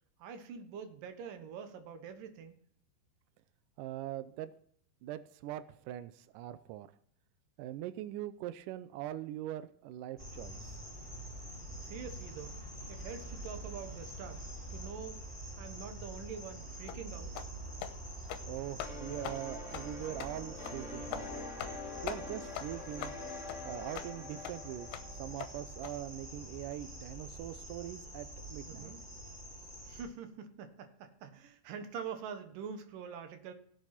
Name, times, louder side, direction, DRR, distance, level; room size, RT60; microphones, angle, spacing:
voice 1, 0.2-2.6 11.8-14.4 14.7-15.2 15.6-17.3 28.7-29.0 29.9-33.5, right 6 dB, 65° right, 8 dB, 2.6 m, -45 dB
voice 2, 3.8-4.5 5.0-6.9 7.6-10.8 18.5-21.3 22.0-23.1 23.6-24.9 25.2-28.9, right 13 dB, 90° right, 12 dB, 1.9 m, -42 dB
sound 1, 10.2-30.0, right 1 dB, 15° right, 6.2 m, -46 dB
sound 2, 16.9-17.0 17.4-17.5 17.8-18.0 18.2-18.5 18.8-18.9 19.2-19.4 19.7-19.9 20.2-20.3 20.6-20.8 21.1-21.3 21.6-21.8 22.1-22.2 22.6-22.7 23.0-23.2 23.5-23.6 24.0-24.1 24.4-24.6 24.9-25.1 25.4-25.5 25.8-25.9, left 10 dB, 85° left, 2.8 m, -41 dB
sound 3, 18.8-26.3, left 3 dB, 25° left, 2.0 m, -46 dB
17.0 x 8.1 x 4.3 m, 0.62 s
omnidirectional pair, 4.5 m